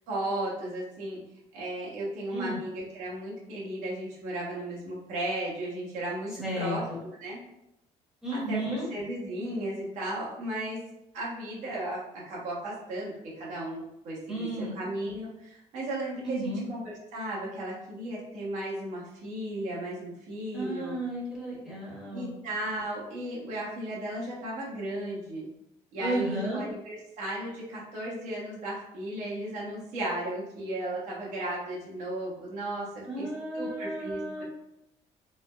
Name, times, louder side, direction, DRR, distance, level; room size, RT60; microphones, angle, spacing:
voice 1, 0.1-1.2 1.5-7.4 8.3-10.8 11.1-21.0 22.1-25.5 25.9-33.3 33.5-34.4, right 1 dB, 75° right, -5 dB, 0.9 m, -35 dB
voice 2, 6.4-7.0 8.2-8.9 14.3-14.8 16.2-16.7 20.5-22.4 26.0-26.6 33.1-34.4, right 1 dB, 5° right, -7 dB, 1.1 m, -33 dB
3.2 x 2.0 x 2.2 m, 0.84 s
cardioid pair, 130°, 13 cm